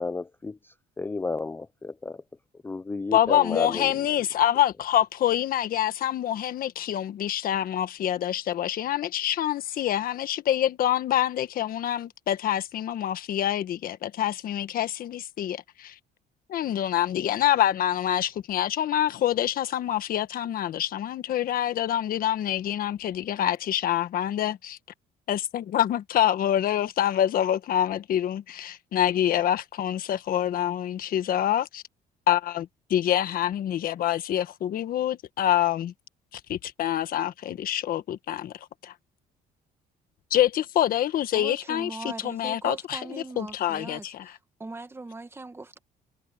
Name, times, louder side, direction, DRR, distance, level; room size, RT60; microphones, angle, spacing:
voice 1, 0.0-2.2 2.6-4.0, left 3 dB, 15° left, 0.4 m, -32 dB
voice 2, 3.1-16.0 16.5-24.8 25.3-31.8 32.3-35.9 36.3-38.5 38.8-38.9 40.3-44.3, left 11 dB, 60° left, 1.3 m, -26 dB
voice 3, 41.3-44.3 44.6-45.8, right 3 dB, 15° right, 1.6 m, -39 dB
cardioid pair, 110°, 17 cm